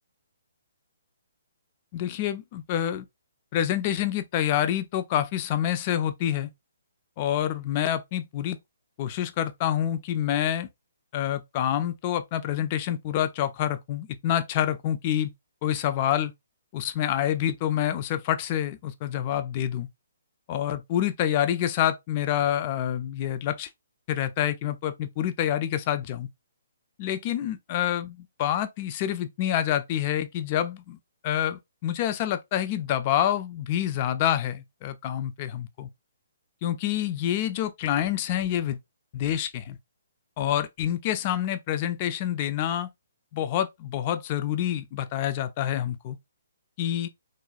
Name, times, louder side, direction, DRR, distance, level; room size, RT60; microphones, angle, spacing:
voice 1, 1.9-3.1 3.5-6.5 7.2-8.6 9.0-10.7 11.1-15.3 15.6-16.3 16.7-19.9 20.5-23.7 24.1-26.3 27.0-31.0 31.2-35.9 36.6-38.8 39.1-39.8 40.4-42.9 43.3-46.2 46.8-47.1, left 11 dB, 35° left, 0.3 m, -27 dB
3.0 x 2.2 x 2.3 m
figure-of-eight pair, 135°, 0 cm